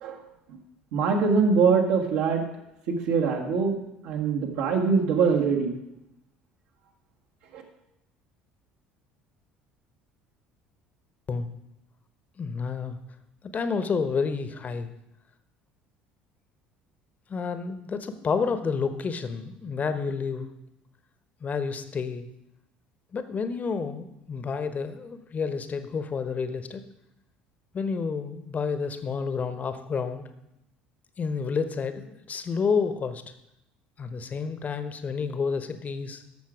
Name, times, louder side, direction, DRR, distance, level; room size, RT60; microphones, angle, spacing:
voice 1, 0.9-2.4 2.9-3.8 4.0-5.8 7.5-7.6, right 5 dB, 60° right, 0 dB, 1.8 m, -23 dB
voice 2, 12.4-13.0 13.4-14.9 17.3-20.5 21.4-22.3 23.1-26.8 27.7-30.2 31.2-33.2 34.0-36.2, left 5 dB, 30° left, 10 dB, 1.0 m, -30 dB
13.5 x 6.1 x 5.0 m, 0.85 s
figure-of-eight pair, 60°, 5 cm